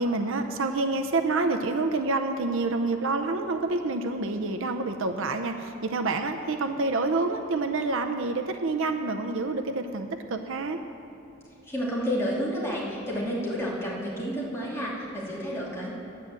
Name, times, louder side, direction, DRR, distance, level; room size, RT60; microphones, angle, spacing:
voice 1, 0.0-10.8, right 3 dB, 60° right, 6 dB, 0.6 m, -28 dB
voice 2, 11.7-15.9, equal, 10° left, -6 dB, 2.5 m, -30 dB
10.0 x 9.2 x 7.6 m, 2.9 s
head